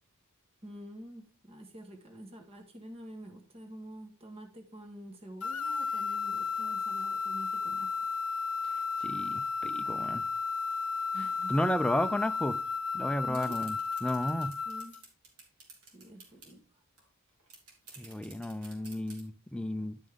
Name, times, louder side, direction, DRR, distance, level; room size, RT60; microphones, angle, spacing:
voice 1, 0.6-8.1 11.1-11.6 13.3-13.6 14.6-15.0 15.9-16.8, equal, 25° right, 1.3 m, -47 dB
sound 1, 5.4-15.0, left 5 dB, 80° left, 0.7 m, -33 dB
voice 2, 9.0-10.2 11.5-12.6 12.9-13.8 14.0-14.5 18.0-20.0, left 1 dB, 5° left, 0.4 m, -32 dB
sound 2, 13.3-16.5 17.0-17.1 17.3-19.2, right 3 dB, 90° right, 3.1 m, -52 dB
11.0 x 5.3 x 3.6 m
head